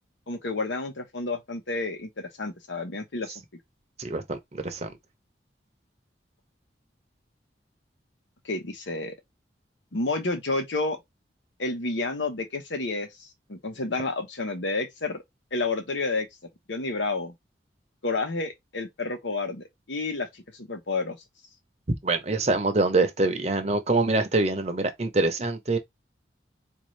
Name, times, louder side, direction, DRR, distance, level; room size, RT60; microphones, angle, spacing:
voice 1, 0.3-3.4 8.4-9.1 9.9-11.0 11.6-15.2 15.5-16.3 16.7-17.3 18.0-21.2, left 3 dB, 90° left, 1.0 m, -30 dB
voice 2, 4.0-4.9 21.9-25.8, right 2 dB, 35° right, 0.7 m, -25 dB
3.9 x 2.7 x 3.2 m
head